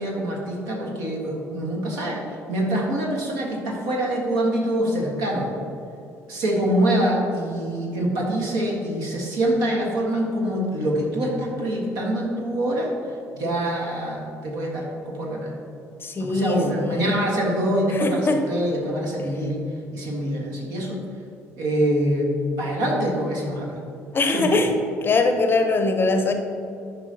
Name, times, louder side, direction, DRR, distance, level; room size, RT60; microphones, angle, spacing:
voice 1, 0.0-2.2 2.5-5.5 6.3-12.9 13.3-15.5 16.2-19.6 19.9-21.0 21.6-23.8 24.3-24.6, right 1 dB, 60° right, -2 dB, 1.6 m, -25 dB
voice 2, 16.0-17.1 17.9-18.4 24.1-24.7 25.0-26.3, left 3 dB, 30° left, 6 dB, 0.7 m, -22 dB
12.0 x 5.5 x 2.8 m, 2.7 s
figure-of-eight pair, 55°, 8 cm